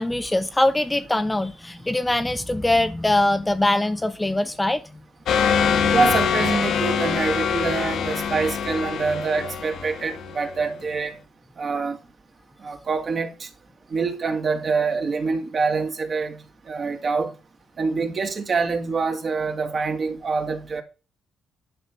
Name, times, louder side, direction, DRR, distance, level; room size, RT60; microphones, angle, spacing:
voice 1, 0.0-4.8, left 1 dB, 15° left, 0.8 m, -22 dB
sound 1, 5.3-10.7, left 7 dB, 75° left, 1.4 m, -24 dB
voice 2, 5.8-11.1 11.6-12.0 12.6-13.5 13.9-16.4 16.7-17.3 17.8-20.8, right 4 dB, 45° right, 2.4 m, -25 dB
10.5 x 5.7 x 5.9 m
cardioid pair, 100°, 0 cm